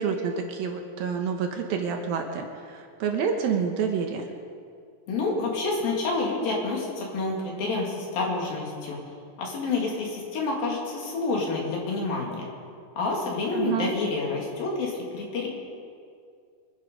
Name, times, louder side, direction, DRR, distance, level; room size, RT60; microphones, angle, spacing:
voice 1, 0.0-4.3 13.5-13.9, right 6 dB, 70° right, 3 dB, 2.7 m, -28 dB
voice 2, 5.1-9.0 9.4-12.5 13.0-15.5, left 3 dB, 60° left, -2 dB, 4.2 m, -28 dB
25.5 x 10.5 x 5.3 m, 2.3 s
omnidirectional pair, 4.7 m